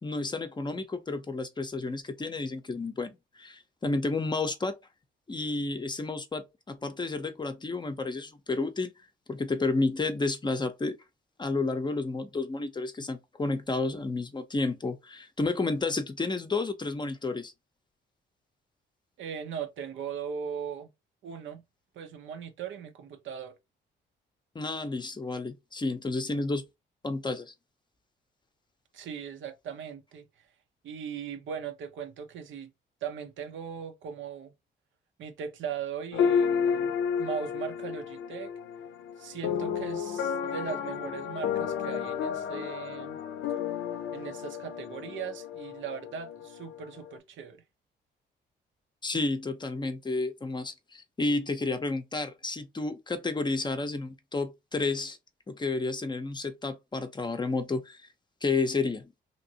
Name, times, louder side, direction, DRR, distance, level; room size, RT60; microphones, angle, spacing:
voice 1, 0.0-4.8 5.3-8.9 9.3-11.0 11.4-17.5 24.5-26.6 27.0-27.5 49.0-55.2 55.5-58.0 58.4-59.1, left 3 dB, 20° left, 0.6 m, -31 dB
voice 2, 19.2-20.9 21.2-21.6 21.9-23.6 28.9-30.3 30.8-32.7 33.0-34.5 35.2-36.9 37.2-38.5 39.2-43.2 44.1-47.6, right 7 dB, 75° right, 0.7 m, -38 dB
sound 1, 36.1-47.2, left 7 dB, 80° left, 0.5 m, -32 dB
2.9 x 2.6 x 2.7 m
cardioid pair, 90°, 20 cm